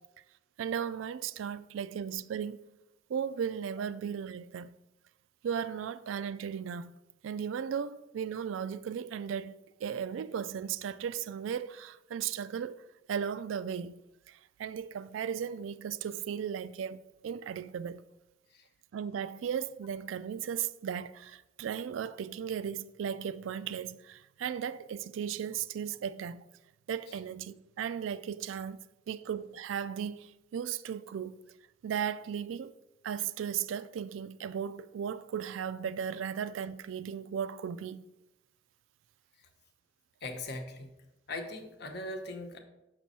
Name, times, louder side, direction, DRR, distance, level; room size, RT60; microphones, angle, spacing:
voice 1, 0.6-2.6 3.1-4.7 5.4-6.9 7.2-12.8 13.1-14.0 14.3-18.0 18.9-26.4 26.9-31.4 31.8-32.7 33.0-38.1, right 8 dB, 85° right, 0.3 m, -36 dB
voice 2, 40.2-40.9 41.3-42.6, left 2 dB, 60° left, 0.9 m, -40 dB
6.2 x 6.0 x 4.1 m
head